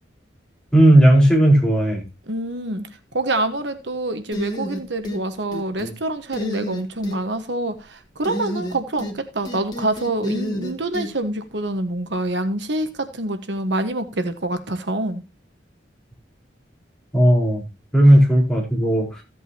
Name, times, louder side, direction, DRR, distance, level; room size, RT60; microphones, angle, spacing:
voice 1, 0.7-2.0 17.1-17.6 17.9-19.2, right 1 dB, 5° left, 4.3 m, -15 dB
voice 2, 2.3-2.9 3.1-15.2, right 2 dB, 70° right, 1.3 m, -26 dB
sound 1, 4.3-5.2 5.5-6.0 6.3-7.2 8.2-9.2 9.4-11.1, equal, 25° left, 2.5 m, -29 dB
15.0 x 8.3 x 2.8 m
head